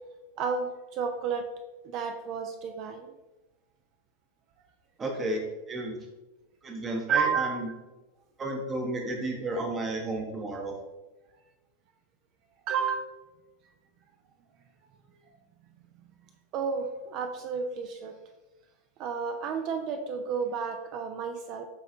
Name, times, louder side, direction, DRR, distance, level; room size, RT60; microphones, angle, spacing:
voice 1, 0.4-1.5 1.9-3.1 7.1-7.6 12.7-13.0 16.5-18.1 19.0-21.7, right 6 dB, 40° right, 7 dB, 0.4 m, -31 dB
voice 2, 5.0-6.0 6.6-7.7 8.4-10.7, right 2 dB, 20° right, 1 dB, 0.8 m, -32 dB
5.5 x 3.2 x 2.5 m, 1.1 s
figure-of-eight pair, 90°, 0 cm